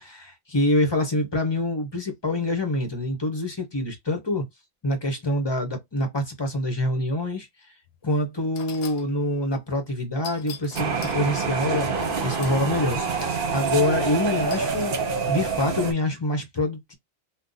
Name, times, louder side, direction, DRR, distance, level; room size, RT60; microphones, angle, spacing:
voice 1, 0.0-4.4 4.8-7.5 8.0-15.0 15.3-16.9, left 1 dB, 25° left, 0.9 m, -26 dB
sound 1, 7.9-8.0 8.6-9.1 10.2-11.2 12.4-13.4 14.5-14.9, left 7 dB, 75° left, 0.8 m, -43 dB
sound 2, 10.7-15.9, right 5 dB, 60° right, 0.9 m, -26 dB
2.7 x 2.2 x 3.8 m
omnidirectional pair, 1.1 m